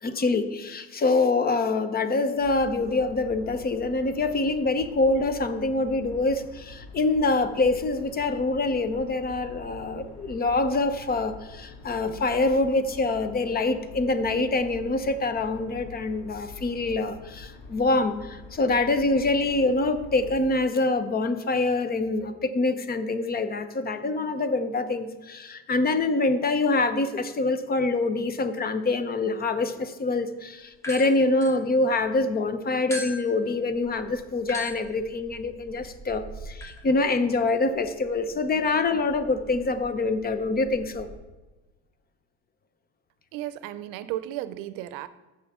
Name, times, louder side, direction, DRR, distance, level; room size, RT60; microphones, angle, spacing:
voice 1, 0.0-41.1, left 3 dB, 25° left, 10 dB, 0.8 m, -25 dB
sound 1, 2.4-20.4, left 3 dB, 85° left, 2.4 m, -45 dB
sound 2, 30.7-32.2 32.9-41.2, equal, 10° left, 1.5 m, -43 dB
voice 2, 43.3-45.1, right 13 dB, 75° right, 14 dB, 0.6 m, -34 dB
15.0 x 5.8 x 3.6 m, 1.2 s
supercardioid pair, 105°, 34 cm